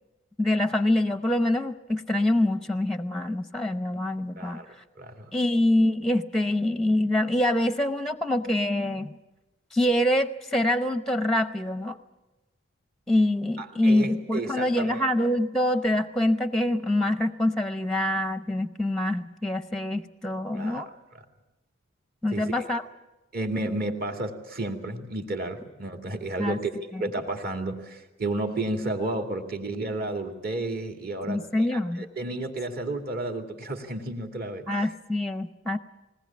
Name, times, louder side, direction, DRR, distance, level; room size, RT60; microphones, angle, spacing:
voice 1, 0.4-4.6 5.3-9.1 9.7-12.0 13.1-20.9 22.2-22.8 26.4-26.6 26.9-27.0 31.3-32.1 34.7-35.8, left 1 dB, ahead, 10 dB, 0.7 m, -25 dB
voice 2, 4.4-4.7 5.0-5.3 8.7-8.8 13.6-15.1 20.5-21.2 22.3-22.6 23.3-34.9, right 2 dB, 45° right, 4 dB, 2.3 m, -32 dB
21.0 x 19.0 x 8.7 m, 1.1 s
head